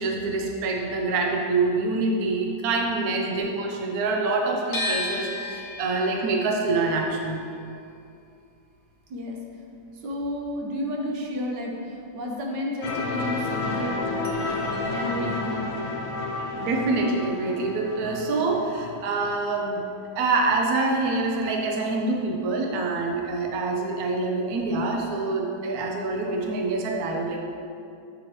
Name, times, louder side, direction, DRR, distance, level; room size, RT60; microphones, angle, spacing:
voice 1, 0.0-7.4 16.6-19.8 20.2-27.4, right 3 dB, 65° right, 1 dB, 1.0 m, -26 dB
sound 1, 4.7-10.8 11.0-12.3, left 2 dB, 60° left, 1.3 m, -35 dB
voice 2, 9.1-9.4 9.9-14.0 14.5-15.7, left 1 dB, 80° right, 0 dB, 1.4 m, -32 dB
sound 2, 12.8-19.6, left 3 dB, 80° left, 1.3 m, -31 dB
7.6 x 4.3 x 3.1 m, 2.5 s
omnidirectional pair, 1.8 m